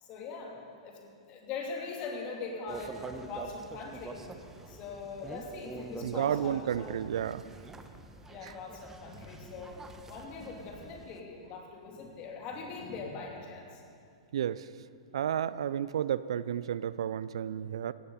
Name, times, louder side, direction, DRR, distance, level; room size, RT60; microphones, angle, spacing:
voice 1, 0.0-3.0 3.3-4.2 4.7-6.9 8.2-13.8, left 4 dB, 40° left, 0 dB, 3.1 m, -42 dB
sound 1, 2.7-11.2, right 3 dB, 15° right, 1.1 m, -46 dB
voice 2, 6.0-7.4 8.4-8.5 14.3-14.7 15.1-17.9, right 9 dB, 70° right, 17 dB, 0.4 m, -32 dB
17.5 x 16.0 x 4.2 m, 2.4 s
hypercardioid pair, 110°, 3 cm